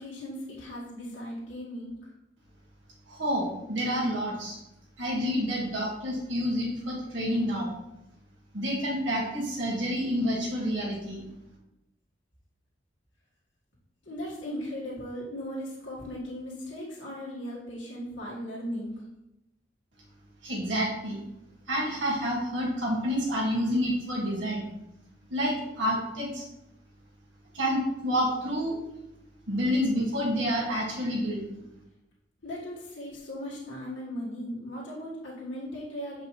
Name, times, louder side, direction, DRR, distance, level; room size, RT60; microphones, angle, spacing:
voice 1, 0.0-2.0 14.0-19.0 32.4-36.2, equal, 85° left, -6 dB, 1.8 m, -37 dB
voice 2, 3.1-4.6 5.0-7.7 8.5-11.2 20.4-21.2 21.7-24.7 25.3-26.5 27.5-28.8 29.5-31.4, equal, 85° right, -3 dB, 2.0 m, -28 dB
7.4 x 5.2 x 3.2 m, 0.89 s
head